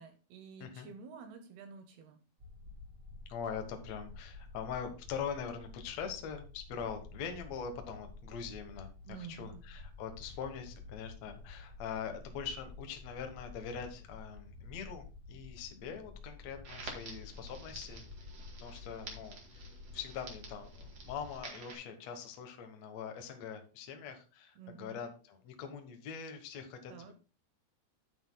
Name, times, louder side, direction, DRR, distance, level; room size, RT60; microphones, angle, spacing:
voice 1, 0.0-2.2 9.1-9.6 24.6-25.0 26.9-27.1, right 6 dB, 75° right, 6 dB, 2.8 m, -50 dB
sound 1, 2.4-21.4, left 3 dB, 25° right, 1.2 m, -51 dB
voice 2, 3.2-18.3 18.6-19.7 19.9-27.1, left 7 dB, 75° left, 5 dB, 1.5 m, -43 dB
Crackle, 16.6-21.7, right 3 dB, 45° right, 2.5 m, -50 dB
10.5 x 9.3 x 2.2 m, 0.34 s
omnidirectional pair, 4.8 m